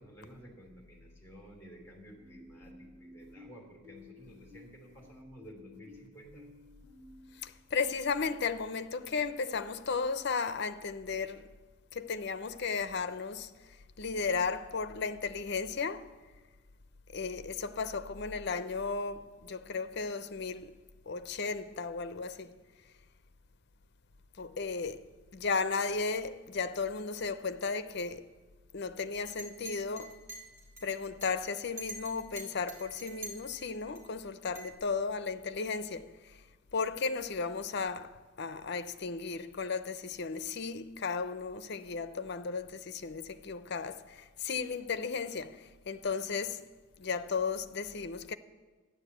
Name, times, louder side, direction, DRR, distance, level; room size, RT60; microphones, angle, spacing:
voice 1, 0.0-6.5, right 1 dB, 10° left, 2.9 m, -53 dB
sound 1, 2.2-7.2, left 2 dB, 35° right, 6.1 m, -55 dB
voice 2, 7.4-11.5 11.9-13.5 14.0-16.2 17.1-20.7 21.1-22.5 24.4-28.3 28.7-30.2 30.8-36.4 36.7-46.7 47.0-48.3, left 4 dB, 55° left, 0.6 m, -35 dB
Chink clink, 29.1-34.0 34.6-34.7, right 2 dB, 15° right, 3.0 m, -46 dB
13.0 x 9.9 x 8.1 m
head